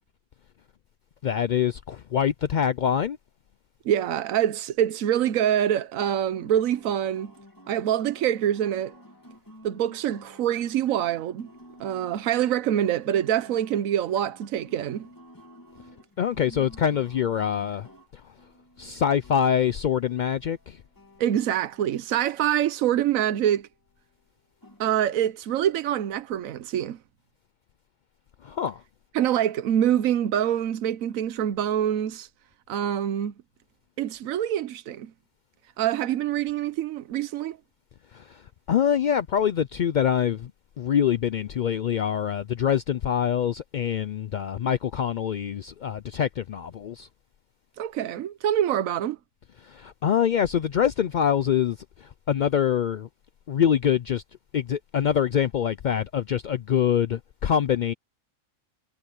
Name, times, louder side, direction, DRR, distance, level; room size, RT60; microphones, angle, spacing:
voice 1, 1.2-3.2 16.2-17.9 18.8-20.8 28.4-28.8 38.1-38.4 38.7-40.5 40.8-47.1 49.6-53.1 53.5-54.2 54.5-57.9, left 8 dB, 85° left, 0.4 m, -25 dB
voice 2, 3.8-7.3 7.7-8.9 9.6-11.5 11.8-15.1 21.2-23.7 24.8-27.0 29.1-32.3 32.7-33.3 34.0-35.1 35.8-37.6 47.8-49.2, right 10 dB, 85° right, 1.1 m, -25 dB
sound 1, 6.3-23.7 24.6-24.9, equal, 15° left, 2.5 m, -52 dB
omnidirectional pair, 1.4 m